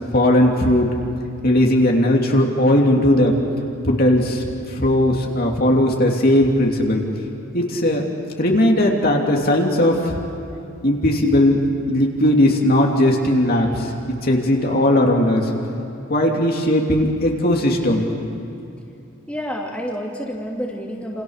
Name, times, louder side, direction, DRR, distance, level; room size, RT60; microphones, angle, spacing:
voice 1, 0.1-0.9 1.4-3.4 3.8-7.0 7.5-8.0 8.4-10.2 10.8-11.6 11.9-15.5 16.1-18.1, left 1 dB, 45° left, 0 dB, 2.9 m, -18 dB
voice 2, 19.3-21.2, equal, 5° left, -2 dB, 2.7 m, -29 dB
29.5 x 28.0 x 6.6 m, 2.6 s
head